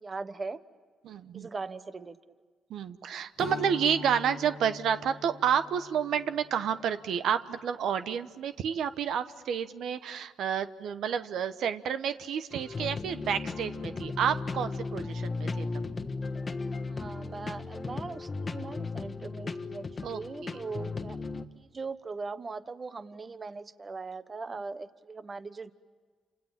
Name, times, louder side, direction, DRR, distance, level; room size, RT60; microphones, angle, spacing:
voice 1, 0.0-0.6 1.3-2.2 3.1-3.2 16.9-21.2 21.5-25.7, right 4 dB, 30° right, 13 dB, 1.1 m, -40 dB
voice 2, 1.0-1.5 2.7-15.7 20.0-20.6, right 8 dB, 75° right, 10 dB, 1.0 m, -30 dB
Strum, 3.4-8.1, left 5 dB, 60° left, 1.8 m, -45 dB
sound 1, 12.5-21.4, left 3 dB, 30° left, 1.4 m, -36 dB
29.5 x 27.0 x 7.4 m, 1.5 s
cardioid pair, 90°, 0 cm